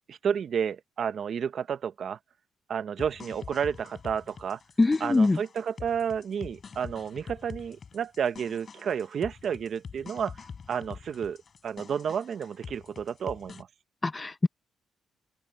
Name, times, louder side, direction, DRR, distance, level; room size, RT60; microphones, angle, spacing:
voice 1, 0.1-2.2 2.7-4.6 5.0-10.4 10.7-11.4 11.6-13.7, right 7 dB, 55° right, 0.9 m, -31 dB
sound 1, 3.0-13.6, left 6 dB, 45° left, 6.0 m, -46 dB
voice 2, 4.8-5.4 14.0-14.5, left 2 dB, 20° left, 0.7 m, -23 dB
open air
cardioid pair, 95°, 0 cm